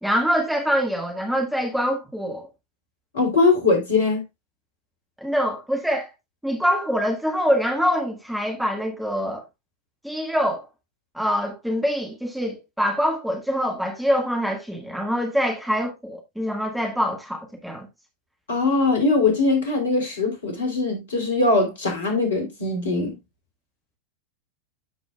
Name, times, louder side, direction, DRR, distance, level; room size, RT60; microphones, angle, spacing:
voice 1, 0.0-2.5 5.2-6.1 6.4-9.4 10.0-10.7 11.1-17.9, equal, ahead, 1.7 m, -24 dB
voice 2, 3.1-4.2 18.5-23.2, left 3 dB, 65° left, 3.1 m, -21 dB
13.0 x 4.9 x 2.3 m
figure-of-eight pair, 90°, 0 cm